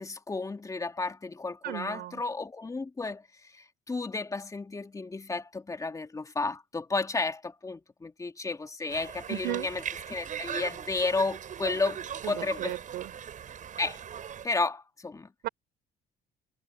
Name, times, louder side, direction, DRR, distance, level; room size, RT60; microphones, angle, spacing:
voice 1, 0.0-9.8 10.1-12.8 13.8-14.0 14.4-15.3, left 3 dB, 20° left, 2.5 m, -32 dB
voice 2, 1.6-2.2 9.3-9.7 12.2-12.3 12.6-13.1 15.4-15.5, right 15 dB, 75° right, 3.8 m, -34 dB
Conversation, 8.9-14.5, right 9 dB, 50° right, 7.8 m, -39 dB
cardioid pair, 110°, 17 cm